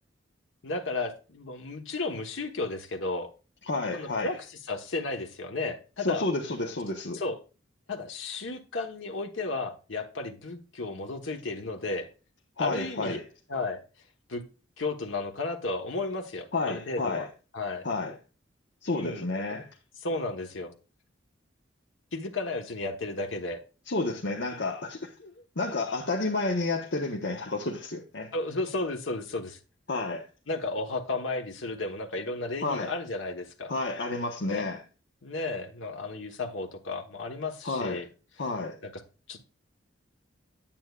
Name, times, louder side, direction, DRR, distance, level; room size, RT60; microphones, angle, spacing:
voice 1, 0.6-3.3 3.9-6.2 7.1-7.4 7.9-12.1 12.6-13.2 13.5-13.8 14.3-14.4 14.8-17.3 17.5-17.9 18.9-19.3 20.0-20.7 22.1-23.6 25.2-25.4 28.3-29.6 30.5-33.7 34.5-34.7 35.2-38.1 38.8-38.9 39.3-39.4, left 3 dB, 85° left, 1.2 m, -33 dB
voice 2, 3.6-4.4 6.0-7.2 12.6-13.2 16.5-17.3 17.8-18.1 18.8-19.7 23.9-25.1 25.6-28.3 29.9-30.3 32.6-32.9 33.7-34.8 37.6-38.0 38.4-38.8, left 2 dB, 65° left, 1.1 m, -30 dB
9.2 x 8.9 x 2.4 m
head